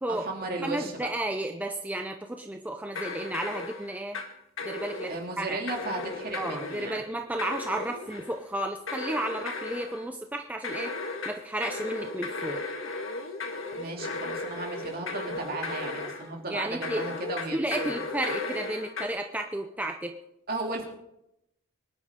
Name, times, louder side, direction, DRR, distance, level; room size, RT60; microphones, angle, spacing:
voice 1, 0.1-1.1 5.1-7.0 13.7-17.6 17.8-18.0 20.5-20.8, right 2 dB, 45° right, 0 dB, 2.7 m, -35 dB
voice 2, 0.6-4.2 4.6-5.6 6.3-10.9 11.3-12.6 16.5-17.1 17.5-20.1, right 1 dB, 10° right, 4 dB, 0.6 m, -33 dB
sound 1, 2.9-4.3 4.6-5.3 5.7-7.0 7.4-8.4 8.9-10.0 10.6-16.3 16.8-19.1, left 3 dB, 80° left, 1.7 m, -35 dB
24.0 x 11.0 x 3.7 m, 0.84 s
head